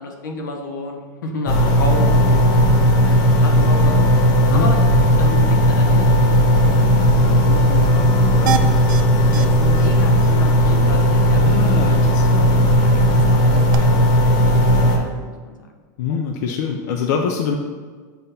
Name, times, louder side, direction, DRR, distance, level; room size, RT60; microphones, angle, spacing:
voice 1, 0.0-2.4 3.0-4.1 4.5-4.8 5.1-6.2 7.0-8.7 9.3-12.0 12.3-12.6 13.1-14.1 14.4-15.6 16.1-16.2, left 2 dB, 90° left, 2 dB, 1.0 m, -31 dB
sound 1, 1.5-15.0, equal, 40° left, 1.1 m, -15 dB
voice 2, 4.4-4.7 11.4-12.5 12.9-13.2 16.0-17.6, left 6 dB, 65° left, 2 dB, 0.5 m, -24 dB
sound 2, 8.5-9.0 9.3-9.5 9.8-9.9 10.2-10.3 13.7-13.8, right 8 dB, 80° right, 0.4 m, -24 dB
6.9 x 2.6 x 5.6 m, 1.5 s
hypercardioid pair, 120°, 10 cm